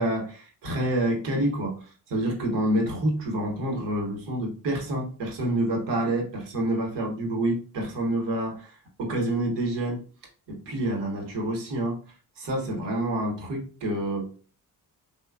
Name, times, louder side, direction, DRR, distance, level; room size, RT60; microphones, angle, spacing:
voice 1, 0.0-1.8 2.1-10.0 10.5-12.0 12.4-14.4, right 1 dB, 80° right, 0 dB, 1.0 m, -28 dB
3.1 x 2.1 x 2.2 m, 0.38 s
supercardioid pair, 50°, 42 cm